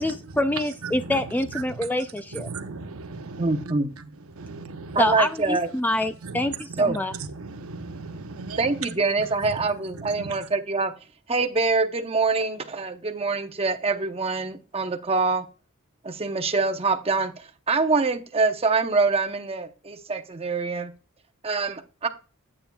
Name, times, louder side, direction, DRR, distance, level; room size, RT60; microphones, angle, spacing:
voice 1, 0.0-2.5 5.0-7.1, left 1 dB, 10° left, 0.3 m, -26 dB
voice 2, 0.8-1.2 1.5-1.9 2.3-5.2 6.2-8.9 9.4-9.7 9.9-10.5, right 4 dB, 75° right, 0.8 m, -37 dB
voice 3, 3.4-3.9 4.9-5.7 6.8-7.0 8.6-11.0 11.3-15.5 16.0-20.9 21.4-22.1, right 3 dB, 25° right, 0.8 m, -25 dB
9.1 x 8.7 x 2.3 m
head